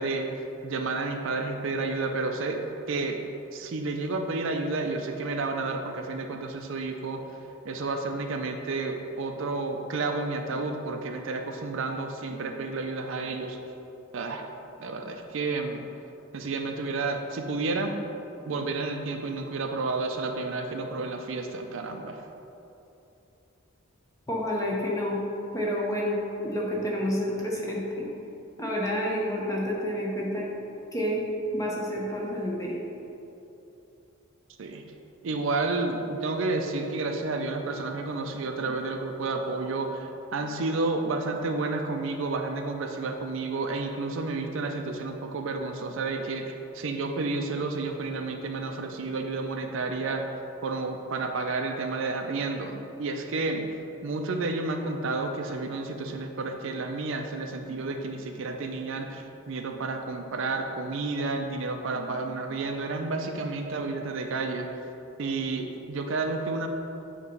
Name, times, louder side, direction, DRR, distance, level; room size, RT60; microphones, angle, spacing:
voice 1, 0.0-2.6 2.9-3.2 3.5-7.2 7.6-13.6 14.1-14.5 14.8-15.8 16.3-17.9 18.5-22.2 34.6-34.8 35.2-50.3 50.6-64.7 65.2-66.7, right 3 dB, 60° right, 4 dB, 0.4 m, -31 dB
voice 2, 24.3-25.2 25.5-28.1 28.6-30.5 30.9-31.2 31.5-32.7, equal, 15° left, -4 dB, 0.9 m, -29 dB
8.0 x 3.0 x 5.3 m, 2.9 s
head